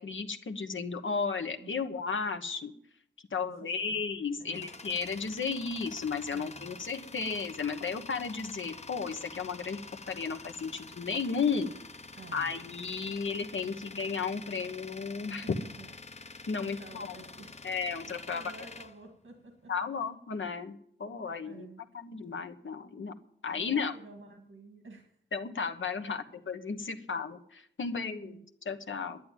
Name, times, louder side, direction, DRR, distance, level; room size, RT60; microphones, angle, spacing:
voice 1, 0.0-2.7 3.3-9.8 10.1-11.7 12.3-15.6 16.5-17.1 17.6-18.4 19.7-21.7 21.9-23.1 23.4-23.9 25.3-28.4 28.6-29.2, left 5 dB, 80° left, 7 dB, 1.2 m, -34 dB
voice 2, 3.4-4.7 6.3-6.7 12.2-12.6 15.4-17.7 18.3-20.1 21.4-21.9 23.5-25.2 26.1-26.2 27.9-28.5 28.9-29.1, right 3 dB, 85° right, 3 dB, 1.9 m, -51 dB
Tools, 4.0-19.8, left 3 dB, 35° left, 0.7 m, -47 dB
11.5 x 9.5 x 9.1 m, 0.68 s
wide cardioid pair, 100°, 20 cm